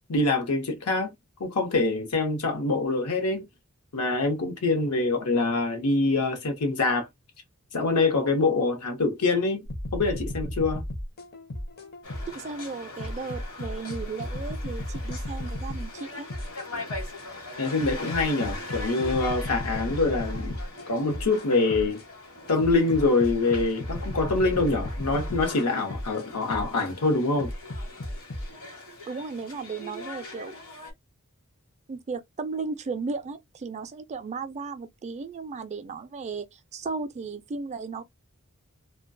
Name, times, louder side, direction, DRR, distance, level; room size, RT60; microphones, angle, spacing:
voice 1, 0.1-1.1 1.4-3.5 3.9-7.1 7.7-9.7 9.9-10.8 17.6-20.6 20.9-22.0 22.5-27.5, left 3 dB, 85° left, 0.8 m, -25 dB
sound 1, 9.6-12.5 13.0-17.3 17.8-22.1 22.6-26.9 27.4-28.5, left 1 dB, 45° left, 0.6 m, -35 dB
sound 2, 12.0-30.9, left 2 dB, 70° left, 1.1 m, -42 dB
voice 2, 12.3-16.3 29.1-30.5 31.9-36.5 36.7-38.0, right 4 dB, 30° right, 0.3 m, -35 dB
2.3 x 2.2 x 2.5 m
head